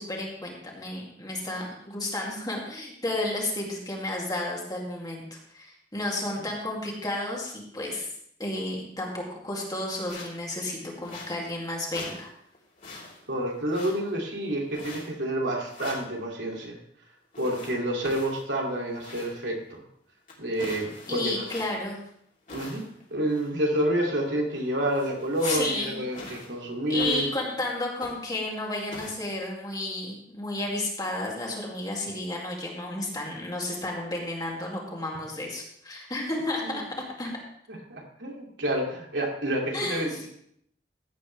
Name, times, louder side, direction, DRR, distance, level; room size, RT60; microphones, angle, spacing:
voice 1, 0.0-8.1 8.4-12.3 21.1-22.0 25.4-26.1 26.9-36.8 37.2-37.3 39.7-40.3, left 2 dB, 25° left, -2 dB, 2.4 m, -32 dB
sound 1, 10.1-10.4 11.0-11.6 11.9-12.3 12.5-13.3 13.7-14.2 14.7-15.3 15.6-16.1 17.3-19.5 19.8-19.9 20.3-21.9 22.5-23.0 23.3-23.6 24.3-24.4 24.6-25.7 26.1-26.6 26.9-27.6 27.9-28.4 28.9-29.1, left 2 dB, 50° left, 3.3 m, -42 dB
voice 2, 13.3-16.8 17.4-19.8 20.4-21.4 22.5-22.8 23.1-27.3 36.6-36.7 37.7-40.3, right 1 dB, 85° right, 0 dB, 2.6 m, -29 dB
15.0 x 8.4 x 3.4 m, 0.70 s
head